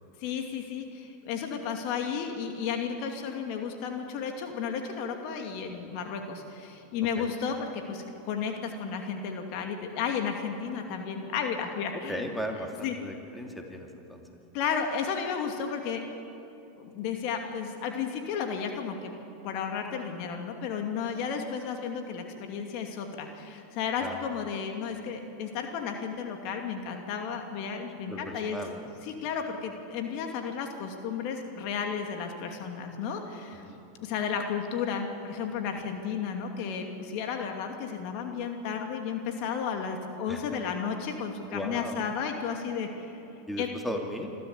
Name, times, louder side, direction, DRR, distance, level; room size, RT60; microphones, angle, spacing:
voice 1, 0.2-12.2 12.8-13.0 14.5-16.0 16.8-19.1 19.4-28.6 29.0-33.6 34.0-43.2 43.6-43.7, left 6 dB, 55° left, 4 dB, 2.5 m, -33 dB
voice 2, 11.9-14.2 24.0-24.2 28.0-28.9 33.7-33.8 40.3-40.6 41.5-42.0 43.5-44.3, equal, 5° left, 2 dB, 2.6 m, -37 dB
26.5 x 13.0 x 8.5 m, 2.9 s
hypercardioid pair, 100°, 0 cm